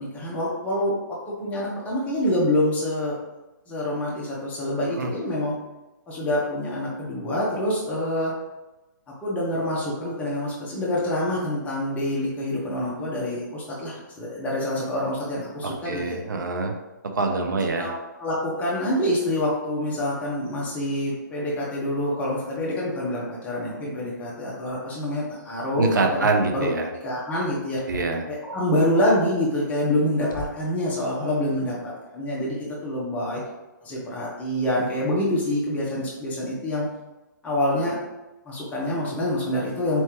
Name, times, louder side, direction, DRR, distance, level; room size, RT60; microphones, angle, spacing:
voice 1, 0.0-3.1 3.7-5.5 6.1-8.3 9.2-16.2 17.8-17.9 18.2-26.3 26.5-27.8 28.3-32.6 32.8-33.4 33.8-36.9 37.4-38.0 38.4-40.0, left 1 dB, 15° left, -5 dB, 1.1 m, -26 dB
voice 2, 15.6-16.7 17.0-17.9 25.8-26.9 27.9-28.3, right 3 dB, 70° right, 4 dB, 0.8 m, -25 dB
sound 1, 27.8-28.2 29.6-29.7 30.3-30.8, left 1 dB, 70° left, 0.8 m, -37 dB
4.3 x 3.5 x 3.0 m, 1.1 s
hypercardioid pair, 135°, 11 cm